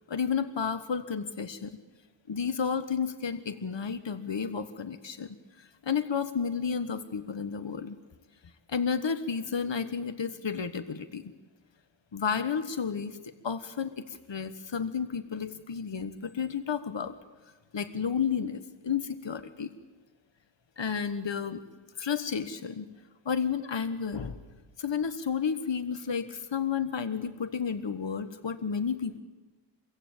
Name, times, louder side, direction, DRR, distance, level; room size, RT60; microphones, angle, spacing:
voice 1, 0.1-1.8 2.3-8.0 8.7-11.3 12.1-13.2 13.4-17.2 17.7-19.7 20.8-21.7 22.0-22.9 23.2-24.4 24.8-29.2, left 6 dB, 65° left, 10 dB, 1.4 m, -32 dB
26.5 x 23.0 x 9.0 m, 1.2 s
wide cardioid pair, 65°, 46 cm